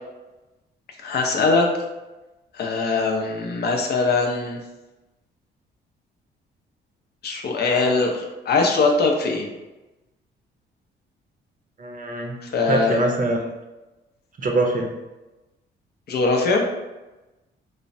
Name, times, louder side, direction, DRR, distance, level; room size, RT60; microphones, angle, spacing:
voice 1, 1.0-1.7 2.5-4.6 7.2-9.5 12.4-13.0 16.1-16.6, left 3 dB, 55° left, 2 dB, 0.5 m, -21 dB
voice 2, 11.8-12.3 12.7-13.5 14.4-14.9, right 2 dB, 40° right, 1 dB, 0.6 m, -23 dB
3.0 x 2.0 x 2.6 m, 1.1 s
cardioid pair, 90°, 20 cm